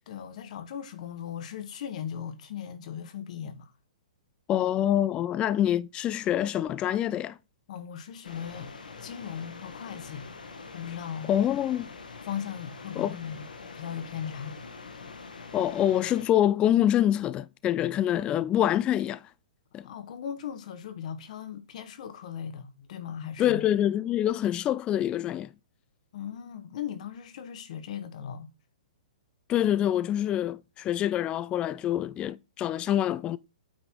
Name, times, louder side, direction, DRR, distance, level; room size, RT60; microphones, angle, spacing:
voice 1, 0.1-3.7 7.7-8.7 9.0-10.3 10.7-11.3 12.2-13.5 13.7-14.6 19.8-23.7 26.1-28.5, left 8 dB, 55° left, 1.4 m, -38 dB
voice 2, 4.5-7.4 11.3-11.9 13.0-13.2 15.5-19.2 19.7-19.8 23.4-25.5 29.5-33.4, left 11 dB, 20° left, 0.3 m, -26 dB
sound 1, 8.2-16.2, left 4 dB, 85° left, 1.7 m, -44 dB
8.8 x 4.0 x 4.6 m
hypercardioid pair, 130°, 4 cm